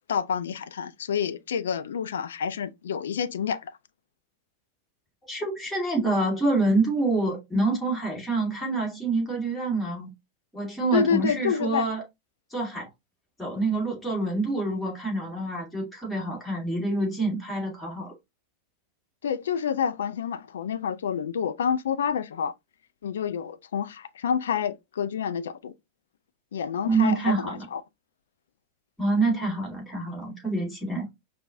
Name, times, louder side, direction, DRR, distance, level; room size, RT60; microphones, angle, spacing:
voice 1, 0.1-3.8 10.9-11.9 19.2-22.5 23.0-25.7 26.5-27.8, left 7 dB, 65° left, 0.4 m, -28 dB
voice 2, 5.3-10.1 10.5-12.0 12.5-12.9 13.4-18.1 26.9-27.6 29.0-31.0, right 2 dB, 5° left, 2.0 m, -26 dB
5.2 x 2.3 x 2.6 m
figure-of-eight pair, 90°, 0 cm